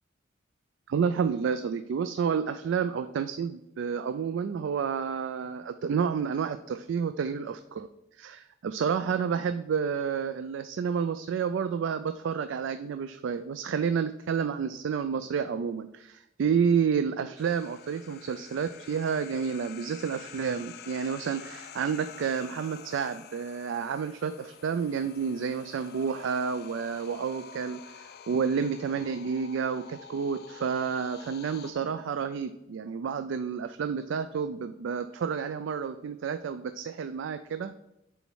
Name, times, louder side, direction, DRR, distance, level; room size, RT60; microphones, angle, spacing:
voice 1, 0.9-7.9 8.2-37.7, right 6 dB, 70° right, 10 dB, 0.3 m, -30 dB
sound 1, 17.4-31.7, left 7 dB, 55° left, 0.4 m, -48 dB
7.0 x 4.1 x 4.6 m, 0.89 s
head